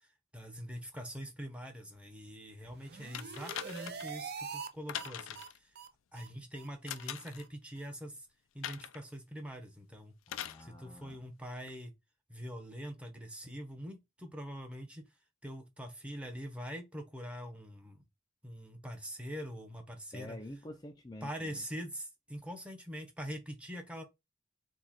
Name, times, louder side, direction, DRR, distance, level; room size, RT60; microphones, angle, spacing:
voice 1, 0.3-5.7 6.1-8.3 8.5-10.1 10.6-11.9 12.3-15.0 15.4-18.0 18.4-20.4 21.2-24.0, equal, 5° right, 1.0 m, -44 dB
sound 1, 2.7-4.7 4.9-5.1 5.3-5.5 5.7-5.9 6.1-6.3 6.5-6.7 7.0-7.1 7.4-7.5 7.8-7.9, right 6 dB, 55° right, 0.6 m, -44 dB
sound 2, 3.1-4.1 4.9-5.6 6.9-7.5 8.6-9.0 10.3-10.6 11.7-11.8, left 10 dB, 85° left, 0.4 m, -42 dB
voice 2, 10.3-11.2 20.1-21.7, left 1 dB, 20° left, 0.5 m, -48 dB
4.8 x 2.4 x 4.3 m
head